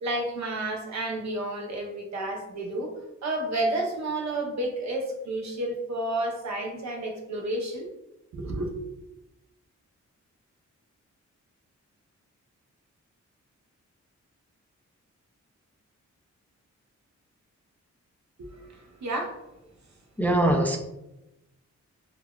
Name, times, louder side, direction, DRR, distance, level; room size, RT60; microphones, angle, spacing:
voice 1, 0.0-2.9 3.2-7.9 8.3-8.7 18.4-19.4, right 1 dB, 65° right, 2 dB, 0.7 m, -31 dB
voice 2, 20.2-20.8, right 1 dB, 5° left, 2 dB, 0.4 m, -22 dB
3.8 x 2.2 x 2.2 m, 0.92 s
cardioid pair, 55°, 30 cm